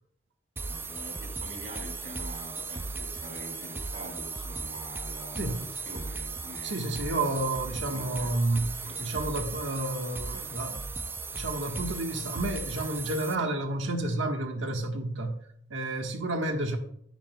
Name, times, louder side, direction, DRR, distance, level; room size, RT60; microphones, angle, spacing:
sound 1, 0.6-13.4, right 4 dB, 10° right, 0.3 m, -37 dB
voice 1, 0.7-6.8 7.8-9.2, right 1 dB, 55° right, 0 dB, 3.3 m, -45 dB
voice 2, 6.6-8.7 9.0-10.8 11.3-15.4 15.7-16.8, right 2 dB, 90° right, 3 dB, 1.5 m, -30 dB
10.5 x 9.8 x 2.3 m, 0.67 s
head